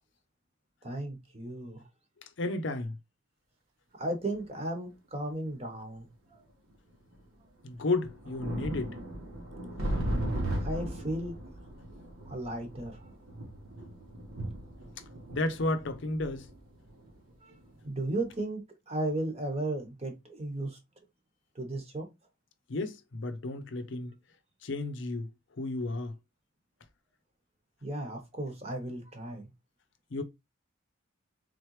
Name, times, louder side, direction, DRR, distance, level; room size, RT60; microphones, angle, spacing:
voice 1, 0.8-1.8 4.0-6.4 10.6-11.3 12.3-13.0 17.4-17.5 17.8-20.8 21.5-22.1 27.8-29.5, right 1 dB, 30° right, 1.1 m, -35 dB
voice 2, 2.4-2.9 7.6-8.9 15.3-16.5 22.7-24.1 24.6-25.3 25.6-26.1 30.1-30.2, left 2 dB, 60° left, 0.6 m, -32 dB
sound 1, 4.3-4.4 5.5-5.6 6.7-6.8 7.1-7.2 7.7-17.8 18.2-18.4, right 1 dB, 85° right, 1.2 m, -37 dB
3.8 x 3.2 x 3.1 m
head